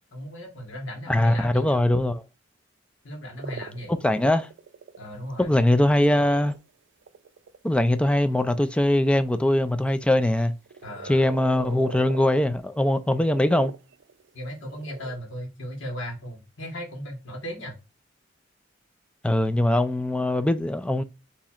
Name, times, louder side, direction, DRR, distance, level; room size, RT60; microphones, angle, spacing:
voice 1, 0.1-1.8 3.0-3.9 5.0-5.6 10.8-11.2 14.3-17.8, equal, 85° left, 1.5 m, -36 dB
voice 2, 1.1-2.2 3.9-4.5 5.4-6.5 7.6-10.5 11.1-13.7 19.2-21.0, left 1 dB, 5° left, 0.3 m, -22 dB
sound 1, 3.4-5.1 5.9-6.6 7.0-9.0 10.0-12.5 12.9-14.3 14.6-15.2, right 5 dB, 70° right, 0.4 m, -42 dB
7.1 x 2.8 x 2.5 m
head